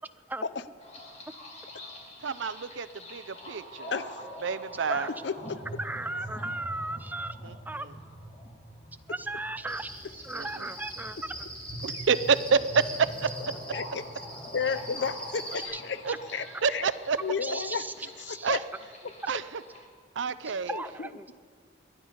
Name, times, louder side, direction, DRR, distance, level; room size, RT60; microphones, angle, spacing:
sound 1, 0.8-19.8, equal, 35° left, 2.8 m, -44 dB
voice 1, 2.2-3.9 4.4-5.1 7.4-7.5 10.3-10.7 11.8-13.3 16.0-16.1 16.6-17.2 18.4-18.6 19.3-19.6 20.2-20.7, right 5 dB, 80° right, 16 dB, 0.5 m, -28 dB
voice 2, 3.9-4.2 5.2-5.6 13.7-14.0 14.5-16.0 16.3-16.8 17.2-17.8 18.2-18.6 20.7-21.3, left 5 dB, 65° left, 14 dB, 0.6 m, -32 dB
voice 3, 5.8-7.9 9.1-11.5 15.7-15.8 16.1-16.2 17.4-17.9 18.3-18.5 19.2-19.3 20.4-21.3, right 2 dB, 10° right, 11 dB, 0.4 m, -36 dB
Cricket, 9.7-15.6, equal, 5° left, 2.5 m, -42 dB
22.0 x 10.5 x 5.4 m, 2.1 s
head